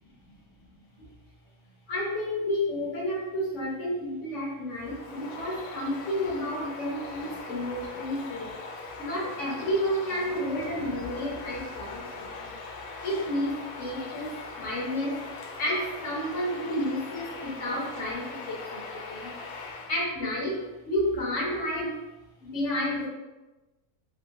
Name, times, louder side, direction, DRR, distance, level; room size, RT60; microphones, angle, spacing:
voice 1, 1.9-8.5 9.0-12.6 13.0-15.3 15.6-19.3 19.9-22.0 22.5-23.1, equal, 60° left, -4 dB, 1.0 m, -31 dB
Bird vocalization bird call bird song, 4.7-20.0, left 3 dB, 85° left, 1.1 m, -41 dB
2.9 x 2.7 x 2.7 m, 1.1 s
omnidirectional pair, 1.6 m